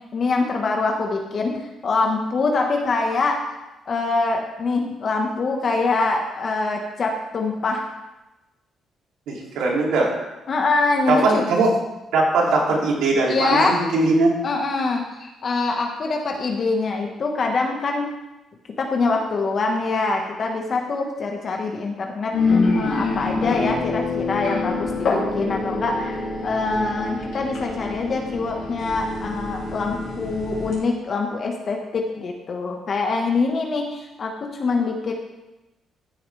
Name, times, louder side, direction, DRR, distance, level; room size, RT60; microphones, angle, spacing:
voice 1, 0.1-1.5 1.8-3.4 3.9-7.8 10.5-11.4 13.3-13.8 14.4-18.1 18.8-35.1, left 3 dB, 50° left, 1 dB, 1.4 m, -24 dB
voice 2, 9.3-10.1 11.1-11.8 12.1-14.4, right 3 dB, 85° right, -2 dB, 2.8 m, -20 dB
sound 1, 22.3-30.8, left 3 dB, 70° left, 2.5 m, -25 dB
14.5 x 7.0 x 3.4 m, 0.99 s
cardioid pair, 90°, 0 cm